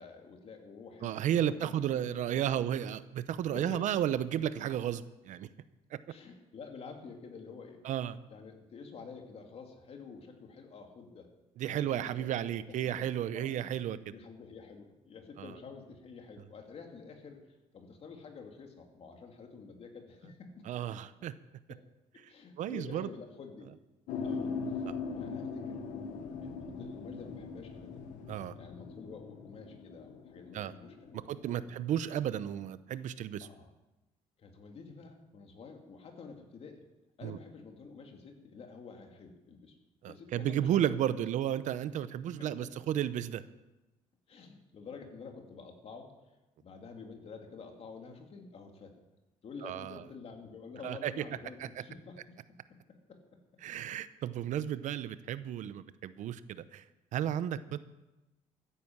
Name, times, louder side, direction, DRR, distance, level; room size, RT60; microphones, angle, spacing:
voice 1, 0.0-2.7 3.5-4.0 6.1-7.9 8.3-11.3 11.6-13.0 13.3-13.5 14.1-20.6 21.7-21.8 22.3-23.7 24.2-24.5 25.1-25.8 26.4-28.0 28.6-31.2 31.5-31.7 33.4-33.7 34.4-36.8 37.2-39.8 40.1-40.8 42.4-42.7 44.3-46.1 46.6-49.0 49.4-53.2, left 5 dB, 50° left, 3 dB, 3.0 m, -49 dB
voice 2, 1.0-5.5 5.9-6.0 7.8-8.2 11.6-14.1 15.4-15.5 20.6-21.3 22.6-23.1 24.9-25.0 28.3-28.6 30.5-30.7 31.3-33.5 37.2-37.4 40.0-43.4 49.6-50.0 50.8-51.1 51.6-51.7 53.6-56.8 57.1-57.8, right 10 dB, 75° right, 14 dB, 0.8 m, -33 dB
sound 1, 24.1-31.6, left 5 dB, 90° left, 1.5 m, -40 dB
14.5 x 10.0 x 7.3 m, 1.0 s
cardioid pair, 110°, 13 cm